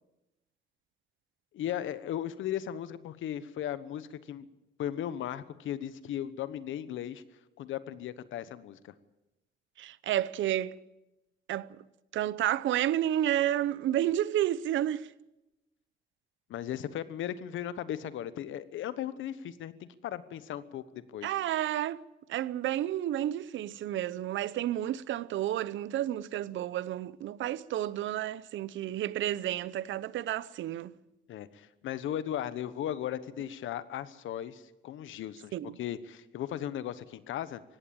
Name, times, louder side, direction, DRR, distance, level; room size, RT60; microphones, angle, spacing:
voice 1, 1.5-4.5 4.8-7.2 7.6-8.9 16.5-21.3 31.3-37.6, left 11 dB, 80° left, 1.2 m, -37 dB
voice 2, 9.8-10.7 11.5-11.7 12.1-15.1 21.2-22.0 22.3-30.9 35.5-35.7, right 12 dB, 75° right, 0.7 m, -31 dB
19.0 x 16.0 x 8.9 m
cardioid pair, 90°, 20 cm